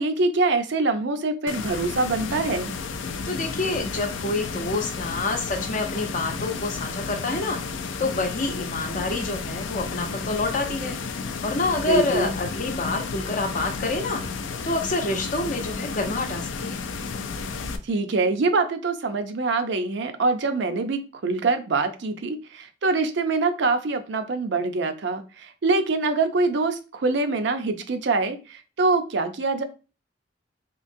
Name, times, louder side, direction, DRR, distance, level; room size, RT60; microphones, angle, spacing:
voice 1, 0.0-2.7 11.9-12.3 17.8-29.6, right 3 dB, 65° right, 8 dB, 0.5 m, -24 dB
sound 1, 1.5-17.8, left 4 dB, 80° left, 0.4 m, -32 dB
voice 2, 3.2-7.6 8.0-11.0 11.4-14.2 14.6-16.8, left 2 dB, 45° left, 4 dB, 0.7 m, -27 dB
3.7 x 2.8 x 2.6 m, 0.33 s
head